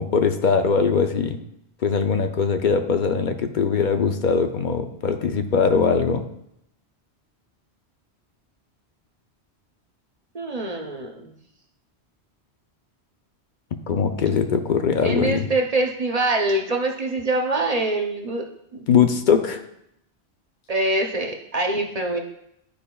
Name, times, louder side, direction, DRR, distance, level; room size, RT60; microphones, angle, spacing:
voice 1, 0.0-1.4 1.8-6.2 13.9-15.5 18.9-19.6, left 6 dB, 55° left, 7 dB, 0.7 m, -21 dB
voice 2, 10.3-11.3 15.0-18.5 18.7-18.9 20.7-22.2, right 2 dB, 40° right, 2 dB, 0.7 m, -24 dB
12.0 x 5.0 x 2.3 m, 0.78 s
omnidirectional pair, 1.1 m